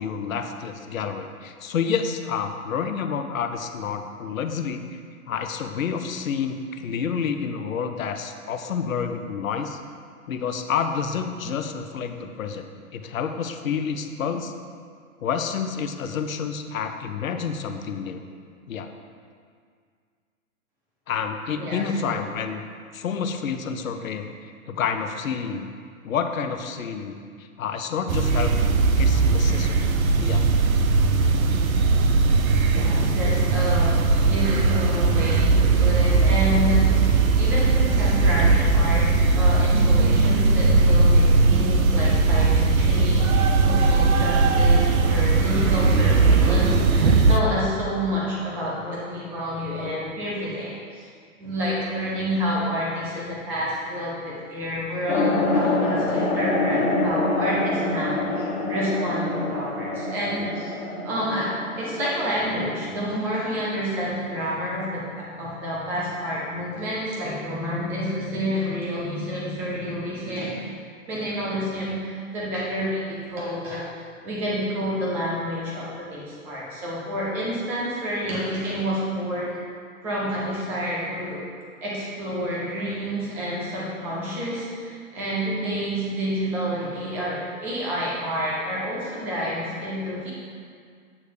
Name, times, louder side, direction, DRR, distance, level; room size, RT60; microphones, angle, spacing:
voice 1, 0.0-5.0 5.3-9.8 10.3-12.7 12.9-14.5 15.2-18.2 18.7-18.9 21.1-22.6 22.9-24.3 24.7-25.7 26.0-29.9 30.2-30.5, left 6 dB, 70° left, 7 dB, 0.8 m, -29 dB
voice 2, 21.6-22.1 32.7-51.1 51.4-60.8 61.0-70.6 71.1-73.9 74.2-79.6 80.0-81.4 81.8-90.3, equal, 5° right, -6 dB, 0.4 m, -29 dB
sound 1, 28.1-47.4, right 3 dB, 75° right, 0.8 m, -19 dB
sound 2, 55.1-63.0, left 2 dB, 90° left, 1.3 m, -26 dB
8.5 x 3.2 x 6.5 m, 2.1 s
hypercardioid pair, 140°, 42 cm